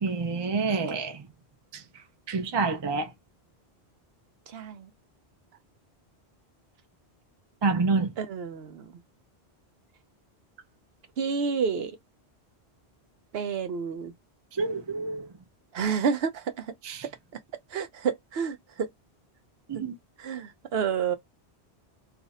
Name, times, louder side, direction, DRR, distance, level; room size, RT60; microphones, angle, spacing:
voice 1, 0.0-1.2 2.3-3.1 7.6-8.1 14.6-15.3 16.8-17.0 19.7-19.9, right 4 dB, 30° right, 0.5 m, -27 dB
voice 2, 4.5-4.9 8.2-8.8 11.2-11.9 13.3-14.1 15.7-16.7 17.7-18.9 20.2-21.2, right 6 dB, 70° right, 0.8 m, -29 dB
2.5 x 2.4 x 4.0 m
omnidirectional pair, 1.1 m